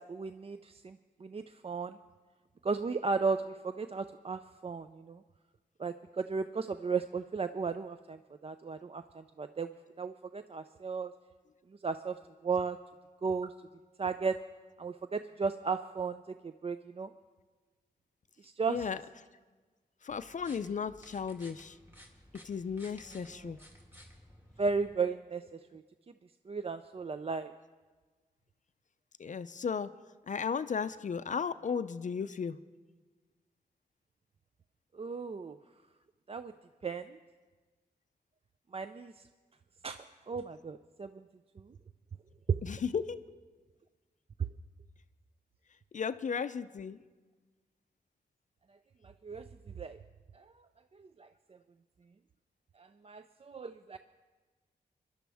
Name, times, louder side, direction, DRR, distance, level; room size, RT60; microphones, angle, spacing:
voice 1, 0.1-2.0 2.6-5.2 5.8-8.2 8.4-9.7 10.0-11.1 11.8-12.1 12.4-12.8 13.2-13.5 14.0-14.4 14.8-17.1 18.4-18.8 23.4-23.5 24.6-25.4 25.7-25.8 26.5-27.5 34.9-35.6 36.3-36.5 36.8-37.2 38.7-39.1 39.8-41.1 42.5-42.6 49.0-49.4 49.8-50.0 50.3-50.4 51.0-51.3 52.8-54.0, right 5 dB, 35° right, 10 dB, 0.4 m, -35 dB
voice 2, 18.7-19.0 20.0-21.8 22.4-23.6 29.2-29.9 30.3-32.6 42.6-43.2 45.9-47.0, left 6 dB, 50° left, 13 dB, 0.4 m, -35 dB
sound 1, 20.1-25.0, equal, 10° right, 2.4 m, -56 dB
22.5 x 11.5 x 3.5 m, 1.3 s
cardioid pair, 70°, 17 cm